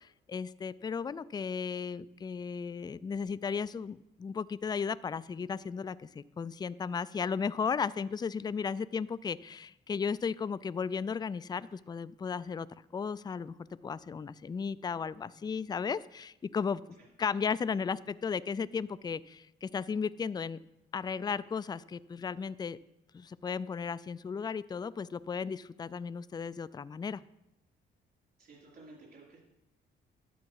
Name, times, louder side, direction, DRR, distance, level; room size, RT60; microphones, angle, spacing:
voice 1, 0.0-12.7 12.9-13.5 13.8-16.8 17.2-20.6 20.9-22.8 23.1-27.2, left 6 dB, 20° left, 17 dB, 0.4 m, -35 dB
voice 2, 28.4-29.4, right 2 dB, 50° right, -4 dB, 4.1 m, -54 dB
11.5 x 7.0 x 4.7 m, 0.88 s
cardioid pair, 90°, 20 cm